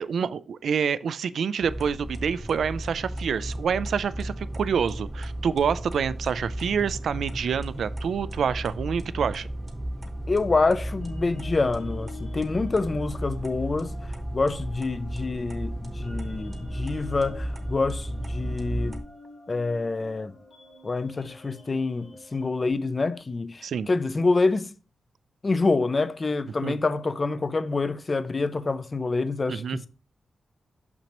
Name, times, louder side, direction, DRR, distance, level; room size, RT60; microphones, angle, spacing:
voice 1, 0.0-9.5 23.6-23.9 26.6-26.8 29.5-29.8, right 7 dB, 70° right, 0.3 m, -27 dB
sound 1, 1.6-19.0, right 1 dB, 20° right, 0.9 m, -34 dB
sound 2, 10.1-22.7, left 3 dB, 45° left, 1.4 m, -49 dB
voice 2, 10.3-13.9 14.3-19.0 19.5-20.4 20.8-24.7 25.4-29.9, left 3 dB, 25° left, 0.4 m, -26 dB
6.4 x 6.0 x 2.9 m
wide cardioid pair, 180°, 0 cm